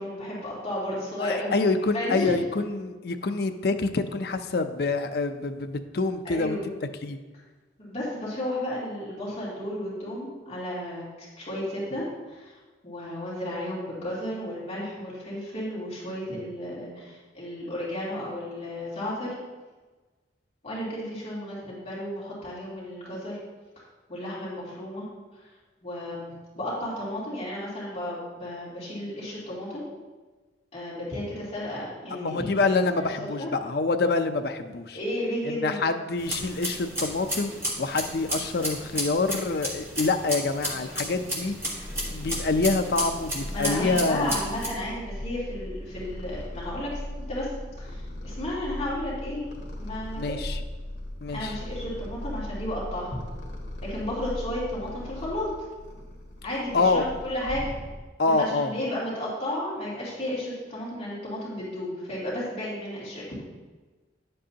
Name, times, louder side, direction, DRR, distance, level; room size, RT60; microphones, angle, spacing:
voice 1, 0.0-2.3 6.2-6.7 7.8-12.6 12.8-19.4 20.6-23.4 24.1-25.1 25.3-25.5 25.8-29.8 30.7-33.1 33.3-33.5 34.9-35.8 43.5-49.5 49.8-50.4 51.3-53.2 53.8-55.5 56.4-57.7 58.4-63.2, left 1 dB, 35° left, -8 dB, 2.7 m, -33 dB
voice 2, 1.2-6.6 7.0-7.2 32.1-35.0 35.5-37.5 37.8-41.5 42.1-44.4 50.2-50.6 51.2-51.5 56.7-57.0 58.2-58.7, left 3 dB, 55° left, 7 dB, 0.5 m, -26 dB
sound 1, 36.2-44.7, equal, 15° right, 1.5 m, -33 dB
Purr, 41.6-58.3, left 1 dB, 80° left, 1.6 m, -38 dB
10.5 x 7.7 x 2.9 m, 1.3 s
head